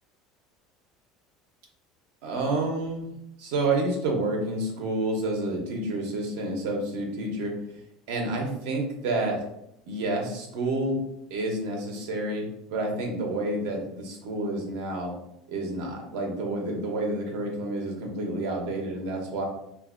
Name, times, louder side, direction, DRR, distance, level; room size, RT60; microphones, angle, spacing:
voice 1, 2.2-3.1 3.4-7.5 8.1-9.4 9.8-11.0 11.3-15.1 15.5-19.4, right 2 dB, 80° right, 1 dB, 0.8 m, -29 dB
3.5 x 2.6 x 2.5 m, 0.79 s
cardioid pair, 160°, 0 cm